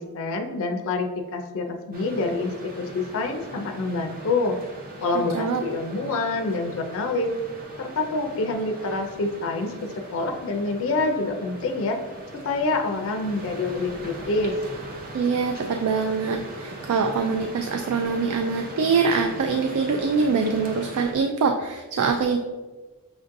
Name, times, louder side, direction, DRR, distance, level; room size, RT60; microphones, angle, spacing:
voice 1, 0.0-4.6 5.0-7.3 7.8-12.0 12.4-14.5, left 3 dB, 60° left, 4 dB, 0.4 m, -27 dB
sound 1, 1.9-21.1, right 1 dB, 40° right, 0.6 m, -40 dB
voice 2, 15.1-22.4, right 5 dB, 80° right, 4 dB, 0.3 m, -24 dB
6.1 x 2.6 x 2.5 m, 1.2 s
head